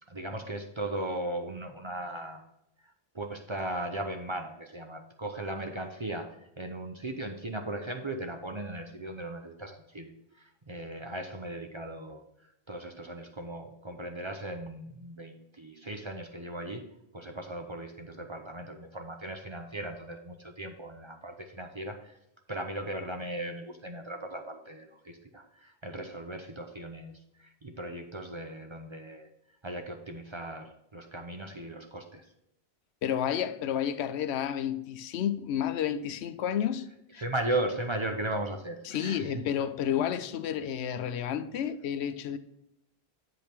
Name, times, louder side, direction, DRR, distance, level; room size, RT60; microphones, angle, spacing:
voice 1, 0.1-2.4 3.1-10.1 10.4-12.2 12.7-16.8 17.1-22.0 22.5-27.2 27.6-29.3 29.6-32.2 37.2-39.4, right 1 dB, 35° right, 0.6 m, -37 dB
voice 2, 33.0-36.9 37.1-37.2 38.8-42.4, left 9 dB, 80° left, 0.8 m, -31 dB
7.9 x 5.2 x 4.4 m
omnidirectional pair, 1.1 m